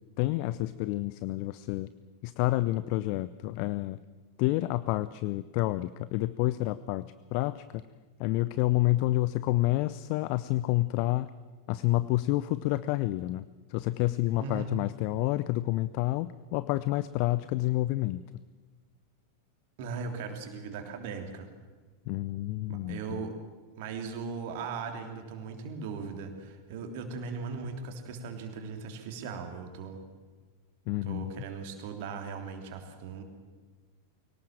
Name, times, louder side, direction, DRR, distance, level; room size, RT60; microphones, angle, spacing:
voice 1, 0.2-1.9 2.2-4.0 4.4-7.8 8.2-11.3 11.7-13.4 13.7-18.2 22.1-23.3 30.9-31.3, left 17 dB, 45° left, 16 dB, 0.5 m, -29 dB
voice 2, 14.4-14.7 19.8-21.5 22.7-23.3 23.8-30.0 31.0-33.2, right 5 dB, 50° right, 5 dB, 3.2 m, -38 dB
23.0 x 18.5 x 7.5 m, 1.4 s
figure-of-eight pair, 90°, 0 cm